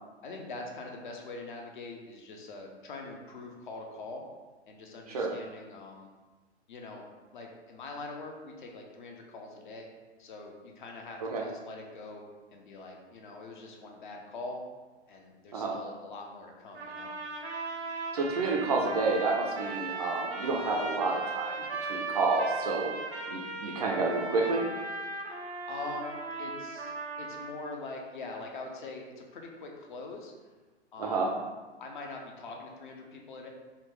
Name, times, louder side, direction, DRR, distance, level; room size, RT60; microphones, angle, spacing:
voice 1, 0.2-4.2 4.7-6.1 6.7-7.0 7.3-9.9 10.2-12.2 12.5-14.6 15.1-17.1 25.7-30.3 30.9-31.3 31.8-33.5, left 3 dB, 45° left, 1 dB, 0.6 m, -43 dB
sound 1, 16.7-27.7, right 3 dB, 75° right, 0.7 m, -37 dB
voice 2, 18.1-22.9 23.3-24.6 31.0-31.3, right 3 dB, 35° right, 0 dB, 0.4 m, -29 dB
4.2 x 2.2 x 3.0 m, 1.3 s
figure-of-eight pair, 110°, 34 cm